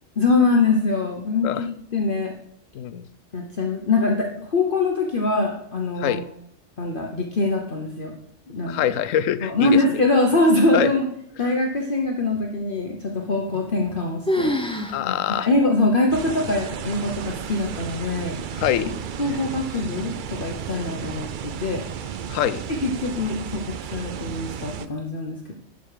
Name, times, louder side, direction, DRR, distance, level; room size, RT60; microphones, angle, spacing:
voice 1, 0.2-2.3 3.3-6.2 6.8-8.1 8.5-8.9 9.4-11.1 11.4-14.5 15.0-18.4 19.2-21.8 22.7-25.5, left 2 dB, 45° left, 0 dB, 1.1 m, -23 dB
voice 2, 2.7-3.1 6.0-6.3 8.7-9.8 10.7-10.9 14.9-15.5 18.6-19.0 22.3-22.6, left 10 dB, 80° left, 15 dB, 1.0 m, -24 dB
sound 1, 13.5-14.0 14.3-15.0 15.3-15.4 16.1-16.2 16.9-17.3, equal, 5° left, 0.7 m, -26 dB
sound 2, 16.1-24.9, right 8 dB, 60° right, 0.5 m, -33 dB
11.5 x 5.4 x 4.8 m, 0.73 s
omnidirectional pair, 1.3 m